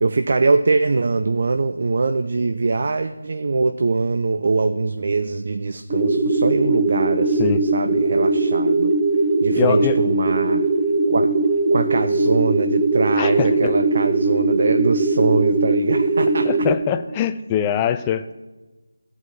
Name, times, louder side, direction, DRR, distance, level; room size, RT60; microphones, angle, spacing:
voice 1, 0.0-9.0 9.4-10.7 11.1-11.3 11.7-16.7, right 3 dB, 45° right, 9 dB, 0.5 m, -22 dB
sound 1, 5.9-16.7, right 2 dB, 15° right, 1.1 m, -20 dB
voice 2, 9.6-10.0 13.2-13.7 16.4-18.3, left 9 dB, 15° left, 10 dB, 0.4 m, -23 dB
14.0 x 4.8 x 8.4 m, 1.2 s
figure-of-eight pair, 160°, 0 cm